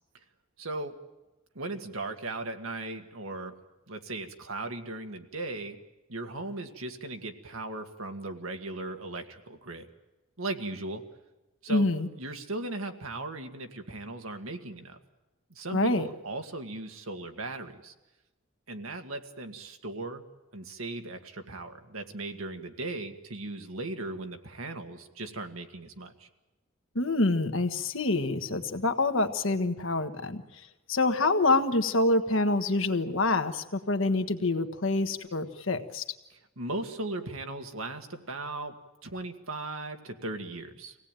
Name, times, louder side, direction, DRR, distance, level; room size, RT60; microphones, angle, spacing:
voice 1, 0.6-0.9 1.5-3.5 3.9-5.8 6.1-9.9 10.4-11.0 11.6-11.9 12.2-15.0 15.5-17.9 18.7-20.2 20.5-26.3 36.3-38.7 39.0-41.0, right 2 dB, 85° right, 5 dB, 2.0 m, -37 dB
voice 2, 11.7-12.1 15.7-16.1 26.9-30.4 30.9-36.0, left 2 dB, 70° left, 7 dB, 1.5 m, -26 dB
25.0 x 17.5 x 9.1 m, 1.1 s
head